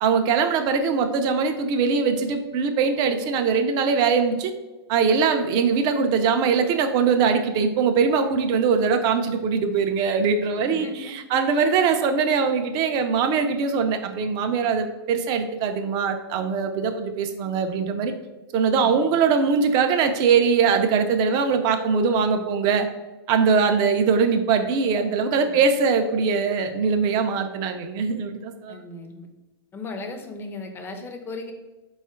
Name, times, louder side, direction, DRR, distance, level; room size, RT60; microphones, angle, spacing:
voice 1, 0.0-4.5 4.9-18.1 18.5-22.9 23.3-28.8, right 5 dB, 30° right, 7 dB, 0.5 m, -22 dB
voice 2, 10.6-11.6 18.7-19.1 25.5-25.7 28.7-29.3 29.7-31.5, left 3 dB, 15° left, 4 dB, 0.6 m, -37 dB
4.2 x 2.3 x 4.3 m, 1.1 s
hypercardioid pair, 120°, 13 cm